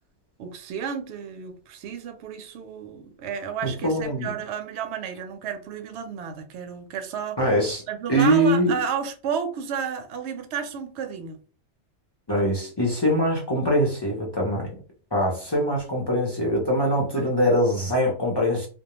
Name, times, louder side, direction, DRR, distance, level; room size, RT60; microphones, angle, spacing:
voice 1, 0.4-7.4 7.9-11.4 16.9-17.3, right 7 dB, 65° right, 0.8 m, -32 dB
voice 2, 3.6-4.3 7.4-7.8 8.1-8.7 12.3-14.7 15.1-18.7, equal, 30° left, 0.5 m, -23 dB
2.3 x 2.1 x 2.9 m
omnidirectional pair, 1.3 m